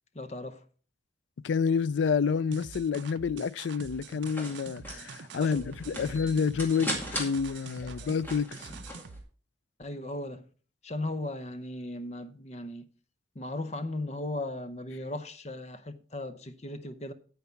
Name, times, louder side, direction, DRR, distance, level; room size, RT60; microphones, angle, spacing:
voice 1, 0.1-0.6 5.4-6.0 8.0-8.1 9.8-10.4 10.8-12.9 13.3-17.1, left 1 dB, 35° left, 0.7 m, -37 dB
voice 2, 1.4-8.7, left 6 dB, 85° left, 0.4 m, -29 dB
sound 1, 2.5-9.2, right 5 dB, 80° right, 0.6 m, -45 dB
sound 2, 3.9-9.2, equal, 10° left, 2.3 m, -40 dB
9.3 x 8.6 x 4.5 m
head